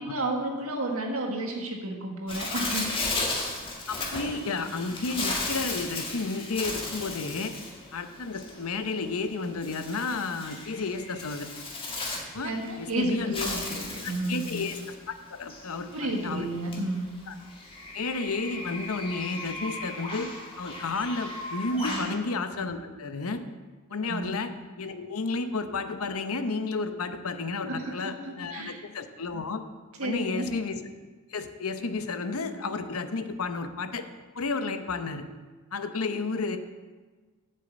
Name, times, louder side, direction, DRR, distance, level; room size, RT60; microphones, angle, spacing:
voice 1, 0.0-2.9 12.4-14.5 15.9-17.1 21.8-22.1 22.6-22.7 24.0-24.3 27.7-28.8 30.0-30.5, right 1 dB, 90° right, 2 dB, 1.7 m, -32 dB
Bird, 2.3-22.2, left 2 dB, 25° left, 1.8 m, -36 dB
voice 2, 3.9-7.5 7.9-11.5 12.3-13.5 14.0-16.5 17.3-17.4 17.9-20.3 20.6-23.4 23.9-24.5 24.8-29.6 30.0-30.8 31.3-34.0 34.3-35.3 35.7-36.6, left 3 dB, 90° left, 9 dB, 0.8 m, -32 dB
7.7 x 6.6 x 7.9 m, 1.3 s
head